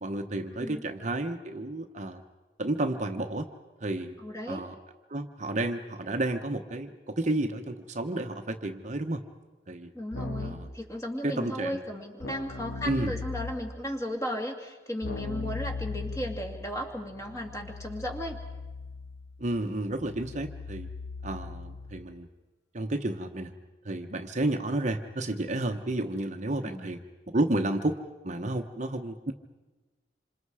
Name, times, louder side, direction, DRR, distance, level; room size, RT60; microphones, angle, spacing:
voice 1, 0.0-2.2 2.6-3.5 3.8-4.2 4.5-4.8 5.1-9.2 9.7-9.9 10.4-10.7 11.2-11.8 12.8-13.1 19.4-20.9 21.2-22.3 22.7-23.5 23.8-27.0 27.3-28.0 28.2-29.3, right 1 dB, 40° right, 5 dB, 1.0 m, -31 dB
voice 2, 4.2-4.6 9.9-18.4 26.6-26.9, equal, 15° left, 2 dB, 2.4 m, -35 dB
Keyboard (musical), 10.1-10.8 12.2-13.8 15.0-22.1, left 3 dB, 75° left, 1.8 m, -39 dB
27.0 x 26.0 x 4.9 m, 1.2 s
head